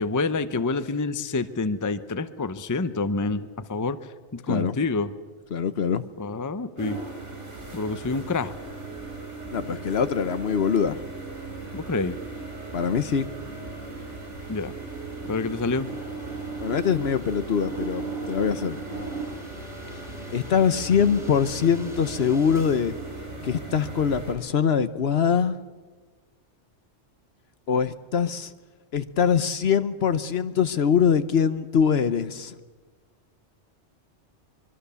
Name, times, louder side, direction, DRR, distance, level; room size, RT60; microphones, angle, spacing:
voice 1, 0.0-4.0 4.3-5.1 6.2-7.0 7.7-8.5 11.7-12.2 14.5-14.7 15.3-15.9, left 3 dB, 20° left, 13 dB, 0.6 m, -27 dB
voice 2, 5.5-6.0 9.5-11.0 12.7-13.3 16.6-18.8 20.3-22.9 23.4-25.6 27.7-28.5 28.9-32.5, left 7 dB, 60° left, 13 dB, 1.1 m, -23 dB
sound 1, 6.8-24.3, right 3 dB, 90° right, 5.6 m, -37 dB
sound 2, 7.6-24.4, right 1 dB, ahead, 2.3 m, -48 dB
24.0 x 23.0 x 7.0 m, 1.4 s
omnidirectional pair, 1.2 m